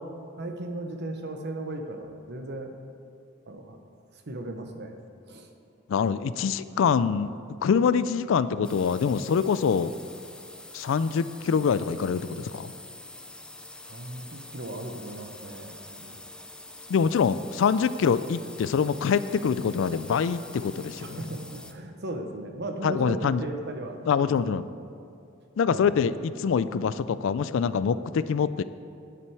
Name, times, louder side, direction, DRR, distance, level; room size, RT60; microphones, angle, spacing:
voice 1, 0.4-2.7 3.5-3.8 4.3-4.9 5.3-5.5 6.7-6.8 13.9-16.2 17.0-17.2 21.0-24.4 25.7-25.9, right 1 dB, 55° right, 5 dB, 0.9 m, -36 dB
voice 2, 5.9-7.3 7.6-9.9 10.7-12.7 16.9-21.2 22.8-23.5 24.1-24.6 25.6-28.6, left 6 dB, 65° left, 15 dB, 0.3 m, -25 dB
sound 1, 8.6-21.7, left 2 dB, 5° left, 0.4 m, -45 dB
9.7 x 8.7 x 4.7 m, 2.6 s
head